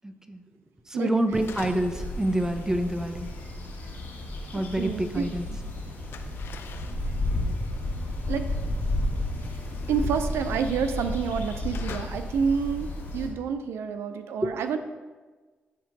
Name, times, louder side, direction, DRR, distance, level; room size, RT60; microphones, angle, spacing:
voice 1, 0.0-0.4 0.9-3.3 4.5-5.5, right 1 dB, 15° right, 7 dB, 0.7 m, -27 dB
sound 1, 1.2-2.1 2.3-5.3 5.5-12.7, left 6 dB, 70° left, 0.5 m, -47 dB
sound 2, 1.3-13.3, left 1 dB, 85° left, 2.3 m, -32 dB
voice 2, 4.5-5.6 8.3-8.5 9.9-14.8, right 6 dB, 80° right, 9 dB, 0.4 m, -29 dB
sound 3, 4.8-10.0, right 1 dB, 50° right, 1.0 m, -49 dB
12.0 x 4.4 x 2.7 m, 1.3 s
supercardioid pair, 60°, 4 cm